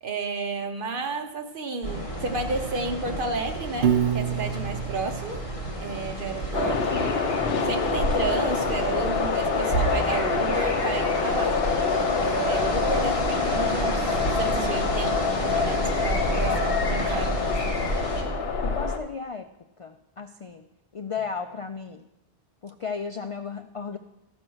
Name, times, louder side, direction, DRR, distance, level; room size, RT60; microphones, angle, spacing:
voice 1, 0.0-5.4 5.8-7.3 7.6-11.6 12.2-17.9, right 3 dB, 60° right, 5 dB, 1.1 m, -32 dB
sound 1, 1.8-18.2, right 1 dB, 30° left, 2.0 m, -32 dB
Piano, 3.8-6.0, right 8 dB, 85° right, 1.0 m, -27 dB
sound 2, 6.5-19.0, left 4 dB, 70° left, 1.1 m, -26 dB
voice 2, 18.6-19.5 19.8-20.7 20.9-22.0 22.6-24.0, left 5 dB, 50° left, 7 dB, 0.4 m, -34 dB
13.5 x 6.2 x 6.2 m, 0.94 s
omnidirectional pair, 1.0 m